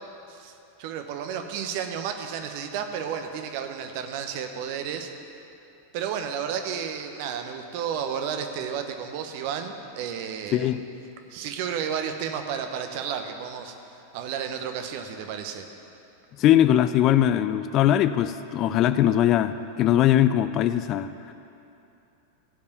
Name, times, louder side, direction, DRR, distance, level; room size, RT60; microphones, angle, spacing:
voice 1, 0.8-5.1 5.9-10.7 11.3-13.7 14.1-15.7, right 7 dB, 45° right, 6 dB, 1.1 m, -32 dB
voice 2, 16.4-21.3, left 11 dB, 35° left, 12 dB, 0.4 m, -21 dB
16.0 x 5.4 x 9.4 m, 2.8 s
figure-of-eight pair, 90°, 0 cm